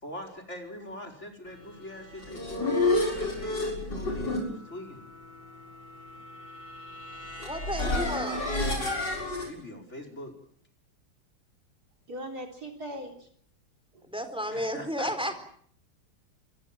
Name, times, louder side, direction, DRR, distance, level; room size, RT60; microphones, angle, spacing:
voice 1, 0.0-5.0 9.5-10.3 14.5-15.1, left 1 dB, 30° left, 6 dB, 5.1 m, -43 dB
sound 1, 2.0-9.5, left 2 dB, 50° left, 7.1 m, -31 dB
voice 2, 7.4-8.5 14.0-15.4, equal, ahead, 8 dB, 3.9 m, -32 dB
voice 3, 12.1-13.3 13.9-14.1, equal, 45° right, 3 dB, 4.0 m, -39 dB
26.5 x 22.0 x 7.6 m, 0.62 s
omnidirectional pair, 2.4 m